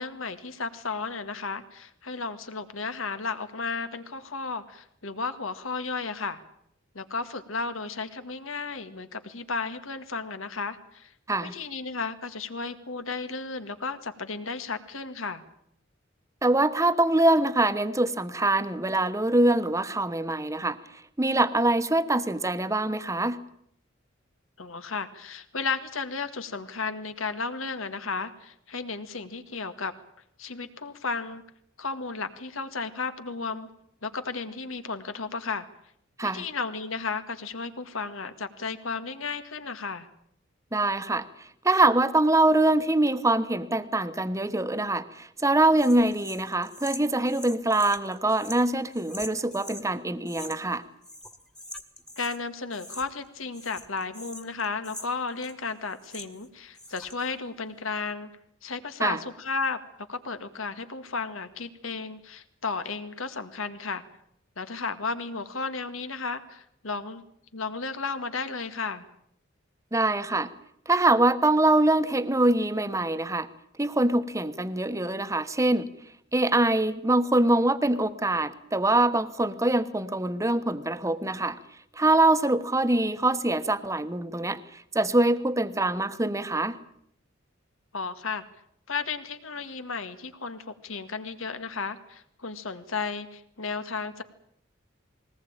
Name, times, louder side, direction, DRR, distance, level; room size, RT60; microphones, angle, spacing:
voice 1, 0.0-6.4 6.9-11.1 11.4-15.4 24.6-29.9 30.4-31.4 31.8-33.7 34.0-35.7 36.2-40.1 52.2-58.3 58.6-59.8 60.1-64.0 64.6-67.2 67.5-69.1 87.9-88.4 88.9-94.2, left 4 dB, 85° left, 9 dB, 1.9 m, -34 dB
voice 2, 16.4-20.8 21.2-23.4 36.2-36.4 40.7-50.8 59.0-59.2 69.9-70.5 70.9-73.5 73.8-75.9 76.3-81.6 81.9-86.8, right 2 dB, 15° right, 12 dB, 1.1 m, -24 dB
sound 1, 45.8-49.9 50.3-50.8 51.0-52.4 52.7-53.3 53.5-56.5 56.7-57.3, left 1 dB, 5° left, 1.5 m, -43 dB
21.0 x 19.0 x 8.9 m, 0.71 s
head